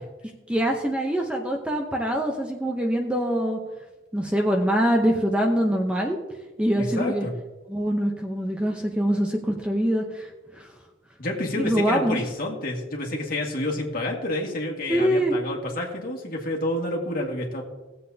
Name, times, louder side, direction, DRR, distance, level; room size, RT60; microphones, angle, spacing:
voice 1, 0.5-3.6 4.1-6.2 6.6-7.3 7.7-10.3 10.5-10.7 11.6-12.2 14.9-15.4, equal, 5° right, 1 dB, 0.7 m, -24 dB
voice 2, 6.8-7.3 11.2-17.6, left 1 dB, 45° left, -1 dB, 1.9 m, -29 dB
17.5 x 7.7 x 2.8 m, 1.2 s
head